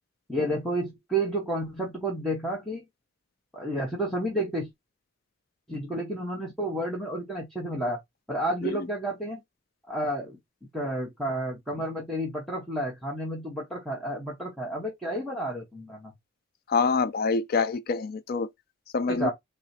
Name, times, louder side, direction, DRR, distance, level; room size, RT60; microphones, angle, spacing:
voice 1, 0.3-2.8 3.5-4.7 5.7-8.0 8.3-9.4 9.9-10.4 10.7-16.1 19.1-19.3, right 1 dB, ahead, 0.9 m, -31 dB
voice 2, 16.7-18.5 18.9-19.3, left 4 dB, 45° left, 0.4 m, -26 dB
3.8 x 2.1 x 4.1 m
head